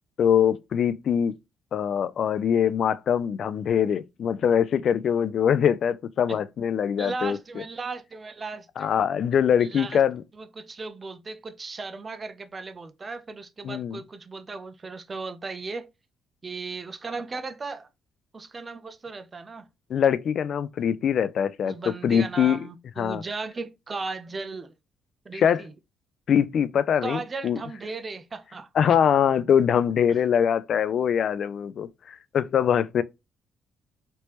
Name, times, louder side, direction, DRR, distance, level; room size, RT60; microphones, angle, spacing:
voice 1, 0.2-1.4 1.7-7.4 8.8-10.2 13.6-14.0 19.9-21.8 22.0-22.6 23.0-23.2 25.3-25.6 26.3-27.6 28.8-33.0, left 8 dB, 60° left, 0.3 m, -23 dB
voice 2, 7.0-9.0 9.6-10.0 10.3-15.9 16.4-17.9 18.3-19.7 21.6-24.7 25.2-25.7 27.0-28.7 30.1-30.2, right 3 dB, 35° right, 0.5 m, -36 dB
3.2 x 2.9 x 3.0 m
cardioid pair, 90°, 0 cm